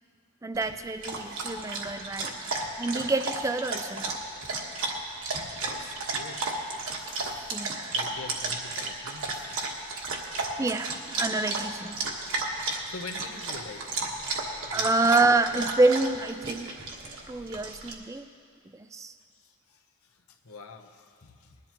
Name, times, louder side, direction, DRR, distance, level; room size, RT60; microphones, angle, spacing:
voice 1, 0.4-4.2 7.5-7.9 10.6-12.0 14.7-16.7 17.3-18.3 18.7-19.1, right 2 dB, 15° right, 10 dB, 0.4 m, -27 dB
Dog, 0.5-17.9, right 3 dB, 65° right, 1.4 m, -33 dB
voice 2, 5.1-9.7 12.9-14.2 14.6-15.1 19.4-21.6, left 3 dB, 80° left, 4 dB, 0.9 m, -46 dB
20.5 x 11.0 x 3.0 m, 2.2 s
head